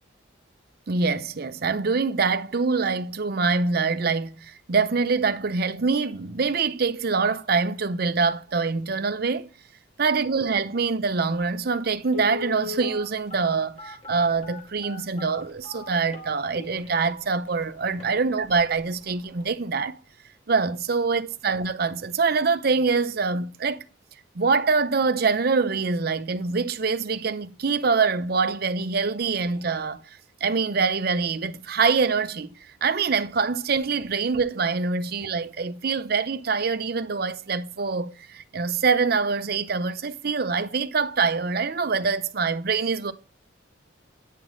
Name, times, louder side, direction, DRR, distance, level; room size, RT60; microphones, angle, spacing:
voice 1, 0.9-9.5 10.0-20.0 20.5-23.8 24.3-43.1, right 4 dB, 50° right, 0.6 m, -25 dB
Telephone, 11.3-11.4 12.1-16.9 17.5-17.6 17.9-18.1 18.5-18.8 19.1-19.2, left 3 dB, 30° left, 2.0 m, -37 dB
9.2 x 5.5 x 3.1 m
head